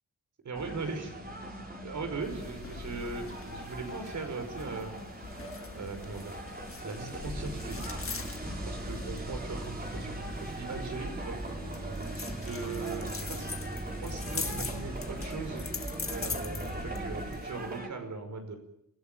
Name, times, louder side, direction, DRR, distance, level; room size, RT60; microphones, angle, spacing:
voice 1, 0.4-1.2 1.8-4.9 5.7-6.4 6.8-7.8 8.6-11.4 12.1-13.5 14.0-15.7 16.1-18.6, right 4 dB, 75° right, 6 dB, 5.8 m, -39 dB
sound 1, 0.5-17.9, right 1 dB, 30° right, 4.6 m, -42 dB
sound 2, 2.2-17.8, left 5 dB, 45° left, 1.7 m, -43 dB
sound 3, 7.3-17.4, right 1 dB, 15° right, 1.6 m, -40 dB
28.0 x 16.0 x 9.4 m, 0.79 s
wide cardioid pair, 110°, 30 cm